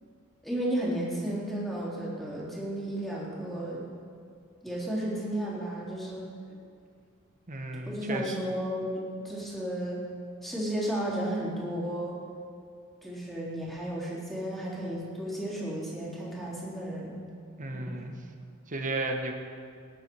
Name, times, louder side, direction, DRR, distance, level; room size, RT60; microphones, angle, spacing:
voice 1, 0.4-3.9 4.6-6.3 7.9-10.0 10.4-12.2 13.0-17.2 17.7-18.0, right 1 dB, ahead, -6 dB, 3.6 m, -33 dB
voice 2, 7.5-8.5 17.6-18.1 18.7-19.3, right 2 dB, 35° right, 3 dB, 1.4 m, -34 dB
19.0 x 10.5 x 4.7 m, 2.3 s
head